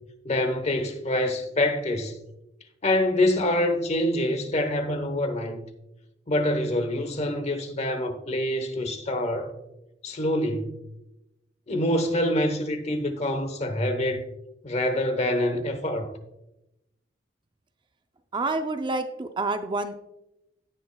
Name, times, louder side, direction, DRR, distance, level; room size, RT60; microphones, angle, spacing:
voice 1, 0.2-2.2 2.8-5.7 6.3-9.5 10.0-10.8 11.7-14.2 14.6-16.1, left 1 dB, 35° left, 1.0 m, -26 dB
voice 2, 18.3-20.0, right 2 dB, 25° right, 0.4 m, -28 dB
17.0 x 6.3 x 2.3 m
head